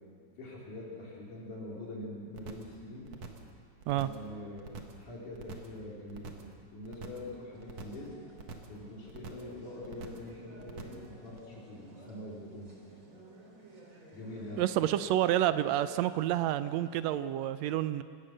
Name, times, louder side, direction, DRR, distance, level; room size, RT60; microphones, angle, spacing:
voice 1, 0.4-3.1 4.0-4.7 5.0-6.4 6.7-8.1 8.7-12.7 14.1-14.6, left 1 dB, 90° left, -4 dB, 5.1 m, -44 dB
sound 1, 2.3-2.8 3.1-3.5 3.8-4.3 4.6-5.0 5.3-5.8 6.1-6.5 6.8-7.3 7.6-8.1 8.4-8.8 9.1-9.5 9.8-10.3 10.6-11.1 11.4-11.5, right 5 dB, 60° right, 2.6 m, -45 dB
sound 2, 7.5-17.2, right 2 dB, 25° right, 3.4 m, -56 dB
voice 2, 14.6-18.0, right 12 dB, 75° right, 13 dB, 1.7 m, -29 dB
24.5 x 16.5 x 6.6 m, 2.3 s
omnidirectional pair, 3.4 m